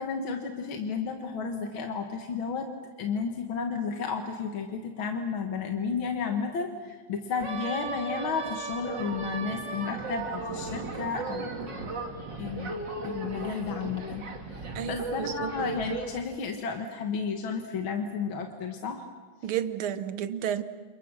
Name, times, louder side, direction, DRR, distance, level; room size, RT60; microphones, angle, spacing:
voice 1, 0.0-2.7 3.0-6.7 7.1-11.6 12.4-14.3 14.9-19.0, left 5 dB, 70° left, 4 dB, 2.3 m, -32 dB
sound 1, 7.4-16.2, right 3 dB, 55° right, 3.1 m, -36 dB
voice 2, 14.8-15.5 19.4-20.6, right 9 dB, 80° right, 12 dB, 1.9 m, -31 dB
29.0 x 28.5 x 6.3 m, 1.4 s
omnidirectional pair, 2.3 m